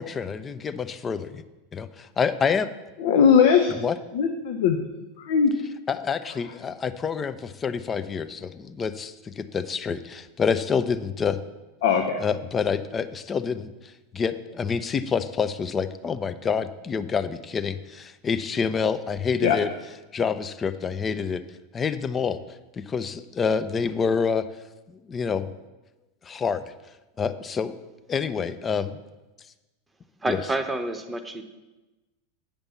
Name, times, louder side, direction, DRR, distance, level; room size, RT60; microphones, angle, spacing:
voice 1, 0.0-1.4 1.7-2.7 3.7-4.0 5.9-11.4 12.2-13.7 14.1-19.7 20.1-21.4 21.7-22.4 22.9-24.4 25.1-25.5 26.2-26.7 27.2-27.7 28.1-29.0 30.3-30.4, left 6 dB, 25° left, 12 dB, 0.5 m, -27 dB
voice 2, 3.0-3.7 4.1-4.8 5.2-5.5 11.8-12.2 19.4-19.6, left 7 dB, 60° left, 5 dB, 0.7 m, -19 dB
voice 3, 30.2-31.4, right 2 dB, 10° right, 8 dB, 0.9 m, -28 dB
8.8 x 5.3 x 7.0 m, 1.1 s
figure-of-eight pair, 90°, 0 cm